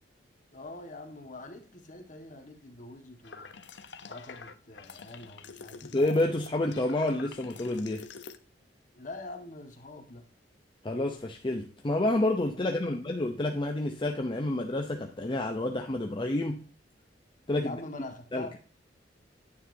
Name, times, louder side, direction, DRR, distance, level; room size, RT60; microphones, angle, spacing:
voice 1, 0.5-3.5 4.1-6.0 8.9-10.2 12.5-13.0 17.6-18.6, left 2 dB, 45° left, 1.6 m, -44 dB
sound 1, 3.2-8.4, left 5 dB, 75° left, 0.8 m, -46 dB
voice 2, 5.8-8.1 10.8-16.6 17.5-17.8 18.3-18.5, left 1 dB, 25° left, 0.7 m, -29 dB
9.5 x 9.4 x 2.7 m
head